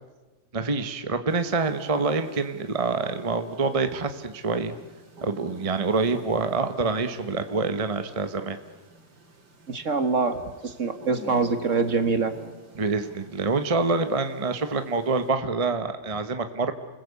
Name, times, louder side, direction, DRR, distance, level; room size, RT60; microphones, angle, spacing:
voice 1, 0.5-4.7 5.2-8.6 12.8-16.7, right 4 dB, 25° right, 9 dB, 1.1 m, -26 dB
sound 1, 1.3-15.3, right 1 dB, 75° right, 3.7 m, -49 dB
voice 2, 9.7-12.4, right 4 dB, 50° right, 10 dB, 1.8 m, -25 dB
29.5 x 21.0 x 8.3 m, 1.2 s
omnidirectional pair, 1.8 m